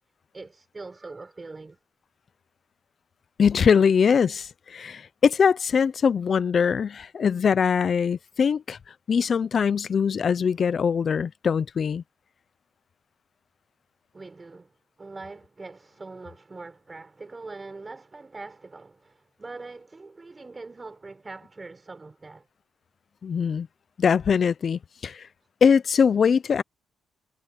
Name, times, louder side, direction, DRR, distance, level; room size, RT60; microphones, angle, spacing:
voice 1, 0.3-1.8 14.1-22.5, right 3 dB, 25° right, 6.3 m, -42 dB
voice 2, 3.4-8.8 9.1-12.0 23.2-23.7 24.0-25.3 25.6-26.6, left 6 dB, 45° left, 0.6 m, -22 dB
cardioid pair, 90°, 0 cm